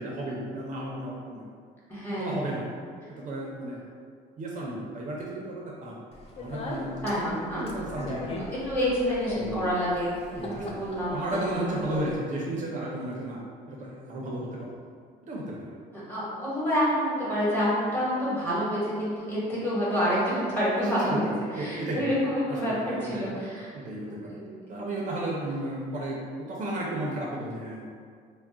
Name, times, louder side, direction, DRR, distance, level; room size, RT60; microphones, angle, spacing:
voice 1, 0.0-1.4 2.1-2.7 3.1-3.8 4.4-6.0 6.4-7.2 7.5-8.4 9.4-9.7 10.3-13.4 13.7-14.7 15.2-15.7 21.0-22.1 22.5-23.3 23.7-24.4 24.7-27.8, right 1 dB, 45° right, -3 dB, 0.5 m, -34 dB
voice 2, 1.9-2.5 7.0-7.7 8.4-12.0 16.1-21.2 21.5-23.7 24.0-24.5, equal, 10° left, -8 dB, 1.0 m, -28 dB
Speech, 6.1-12.2, left 2 dB, 35° left, 0.4 m, -39 dB
2.2 x 2.0 x 3.7 m, 2.1 s
cardioid pair, 110°, 17 cm